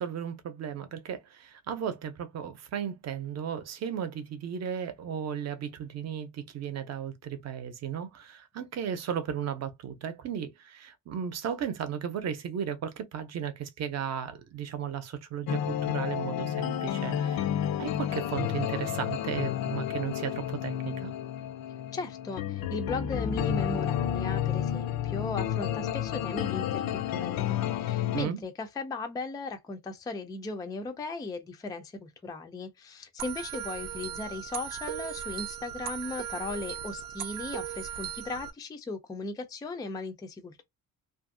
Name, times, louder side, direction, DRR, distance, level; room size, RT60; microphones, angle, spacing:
voice 1, 0.0-17.4 17.8-21.1 28.1-28.4, right 8 dB, 50° right, 0.7 m, -35 dB
sound 1, 15.5-28.3, left 10 dB, 80° left, 0.5 m, -31 dB
voice 2, 21.9-40.6, left 3 dB, 10° left, 0.3 m, -37 dB
sound 2, 33.2-38.5, right 10 dB, 85° right, 0.6 m, -38 dB
2.7 x 2.5 x 2.5 m
cardioid pair, 160°, 34 cm